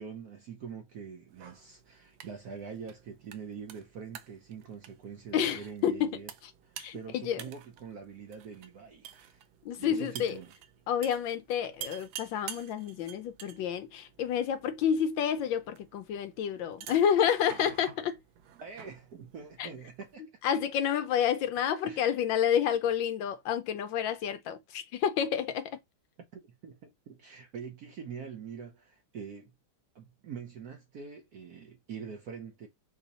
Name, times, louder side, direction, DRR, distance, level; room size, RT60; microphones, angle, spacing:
voice 1, 0.0-6.3 6.6-9.4 9.8-10.5 18.6-20.3 21.8-22.0 26.3-29.5 29.9-32.7, right 6 dB, 60° right, 1.0 m, -44 dB
sound 1, 1.3-20.2, right 10 dB, 90° right, 0.8 m, -50 dB
voice 2, 5.3-6.5 6.8-7.4 9.6-10.4 10.9-18.2 19.6-19.7 20.4-25.8, left 8 dB, 75° left, 1.2 m, -29 dB
4.7 x 2.7 x 4.0 m
omnidirectional pair, 2.3 m